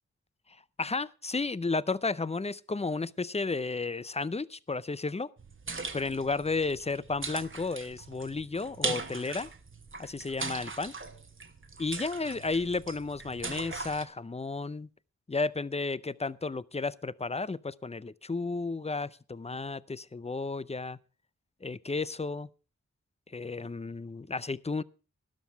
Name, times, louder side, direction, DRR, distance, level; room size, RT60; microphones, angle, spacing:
voice 1, 0.8-5.3 5.9-9.5 10.0-10.9 11.8-14.9 15.3-21.0 21.6-22.5 23.3-24.8, left 3 dB, 20° left, 0.5 m, -33 dB
sound 1, 5.4-14.1, right 3 dB, 40° right, 1.2 m, -40 dB
13.0 x 11.5 x 4.5 m
wide cardioid pair, 65°, 31 cm